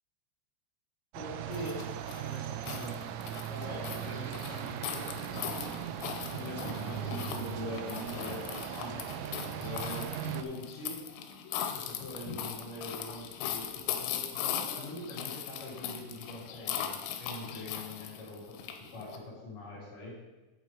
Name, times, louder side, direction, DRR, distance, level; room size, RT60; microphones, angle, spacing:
voice 1, 1.1-1.8 2.1-3.0 3.5-11.0 11.7-20.1, left 1 dB, 50° left, -6 dB, 3.3 m, -43 dB
sound 1, 1.1-10.4, right 11 dB, 85° right, 3.1 m, -38 dB
sound 2, 1.5-19.2, left 9 dB, 90° left, 3.4 m, -39 dB
8.4 x 8.2 x 3.9 m, 1.1 s
omnidirectional pair, 5.9 m